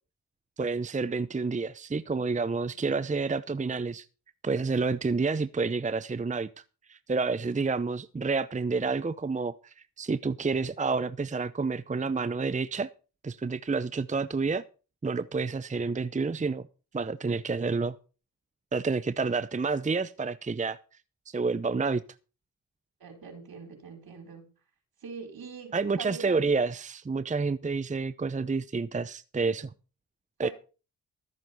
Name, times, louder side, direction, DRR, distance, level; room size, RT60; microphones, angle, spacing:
voice 1, 0.6-4.1 4.4-6.5 6.9-12.9 13.2-14.6 15.0-16.7 16.9-17.9 18.7-20.8 21.3-22.0 25.7-29.7 30.4-30.5, right 4 dB, 20° right, 0.7 m, -29 dB
voice 2, 23.0-24.4 25.0-26.5 30.4-30.5, right 5 dB, 70° right, 4.9 m, -43 dB
13.5 x 7.6 x 5.6 m
supercardioid pair, 45°, 38 cm